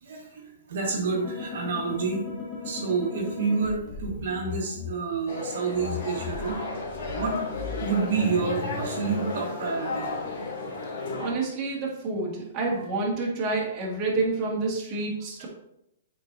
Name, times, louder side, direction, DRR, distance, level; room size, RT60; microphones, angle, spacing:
voice 1, 0.0-2.2 2.6-6.6 7.1-7.4 7.8-10.4 15.4-15.5, right 5 dB, 60° right, 0 dB, 1.4 m, -29 dB
sound 1, 1.1-4.9 5.7-9.3, left 5 dB, 20° left, 1.5 m, -37 dB
sound 2, 5.3-11.3, left 3 dB, 55° left, 2.3 m, -33 dB
voice 2, 11.2-15.5, right 3 dB, 25° right, -4 dB, 1.7 m, -28 dB
8.2 x 4.6 x 2.6 m, 0.79 s
hypercardioid pair, 165°, 0 cm